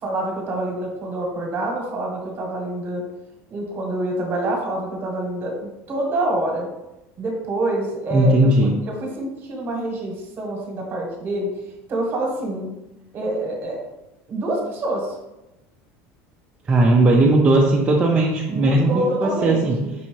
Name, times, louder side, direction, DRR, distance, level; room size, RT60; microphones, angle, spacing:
voice 1, 0.0-3.0 3.5-6.7 7.2-11.5 11.9-12.7 13.1-13.8 14.3-15.2 18.5-19.9, right 1 dB, 35° right, 0 dB, 1.2 m, -26 dB
voice 2, 8.1-8.8 16.7-19.8, right 2 dB, 20° right, -2 dB, 0.4 m, -17 dB
5.4 x 2.7 x 3.0 m, 0.95 s
cardioid pair, 145°, 6 cm